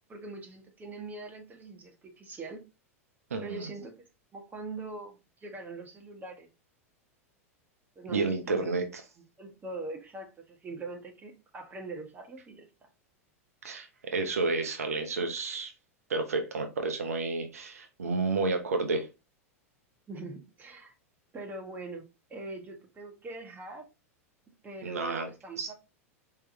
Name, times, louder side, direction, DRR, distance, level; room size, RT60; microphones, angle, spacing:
voice 1, 0.1-2.6 3.4-3.9 4.3-6.5 7.9-8.7 9.4-12.6 20.1-20.9 21.3-22.0 22.3-23.9 24.6-25.7, right 3 dB, 20° right, 1.5 m, -42 dB
voice 2, 3.3-3.7 8.1-8.8 13.6-15.7 16.1-19.1 24.8-25.3 25.6-25.7, right 3 dB, 80° right, 0.7 m, -30 dB
4.6 x 3.5 x 2.9 m
hypercardioid pair, 95°, 8 cm